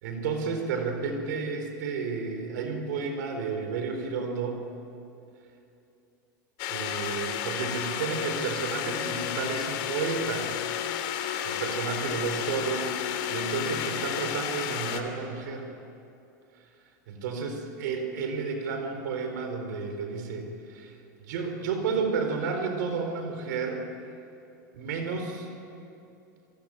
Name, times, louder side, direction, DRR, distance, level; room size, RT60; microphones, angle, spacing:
voice 1, 0.0-4.6 6.7-10.5 11.4-15.7 17.1-20.9 21.2-23.8 24.7-25.5, right 5 dB, 70° right, 5 dB, 4.3 m, -31 dB
sound 1, 6.6-15.0, left 10 dB, 60° left, 2.7 m, -32 dB
28.5 x 22.0 x 9.0 m, 2.7 s
hypercardioid pair, 95°, 10 cm